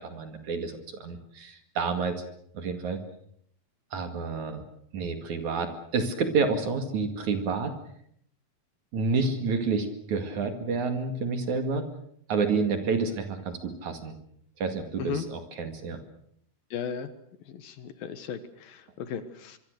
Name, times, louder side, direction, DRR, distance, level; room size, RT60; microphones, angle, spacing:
voice 1, 0.0-2.2 2.5-3.0 3.9-4.6 4.9-7.7 8.9-11.8 12.3-14.2 14.6-16.0, right 4 dB, 50° right, 7 dB, 3.2 m, -29 dB
voice 2, 16.7-17.1 17.5-19.6, left 8 dB, 65° left, 11 dB, 2.8 m, -36 dB
25.0 x 24.0 x 6.7 m, 0.68 s
omnidirectional pair, 4.7 m